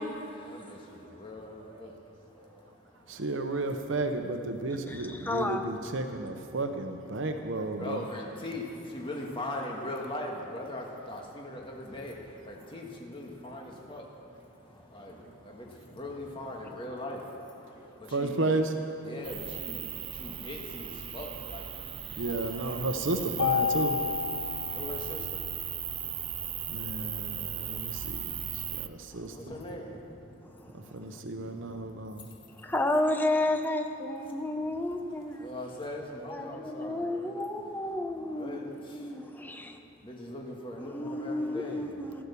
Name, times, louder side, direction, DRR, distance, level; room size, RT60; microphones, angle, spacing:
voice 1, 0.3-2.6 3.0-3.2 4.7-5.3 7.7-18.6 19.0-22.1 22.4-22.7 24.4-26.7 27.2-27.3 28.3-28.8 29.2-30.9 31.3-32.4 34.7-34.8 35.2-37.4 38.2-39.2 40.0-41.9, left 1 dB, 25° left, -1 dB, 1.7 m, -42 dB
voice 2, 2.4-2.7 3.1-8.0 15.1-15.4 18.1-18.7 20.2-20.3 22.2-24.2 26.7-29.4 30.7-32.3 37.3-37.4, right 2 dB, 70° right, 6 dB, 0.9 m, -33 dB
voice 3, 4.9-5.6 17.7-17.9 24.4-24.6 25.9-26.1 26.4-26.8 30.5-31.0 32.6-35.5 36.3-39.8 40.8-42.2, left 1 dB, 10° left, 4 dB, 0.9 m, -32 dB
sound 1, 19.2-28.9, right 10 dB, 25° right, 0.4 m, -37 dB
Mallet percussion, 23.4-25.6, left 8 dB, 80° left, 0.5 m, -31 dB
15.5 x 12.5 x 7.0 m, 2.8 s
head